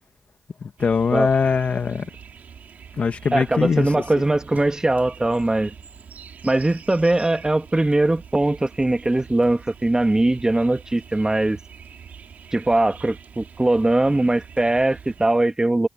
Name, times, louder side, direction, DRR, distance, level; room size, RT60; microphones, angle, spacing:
voice 1, 0.6-2.1 3.0-4.0, left 5 dB, 65° left, 1.9 m, -22 dB
sound 1, 0.8-15.3, right 7 dB, 80° right, 5.0 m, -44 dB
voice 2, 3.3-5.7 6.4-11.6 12.5-15.9, right 2 dB, 25° right, 2.3 m, -21 dB
supercardioid pair, 40°, 3 cm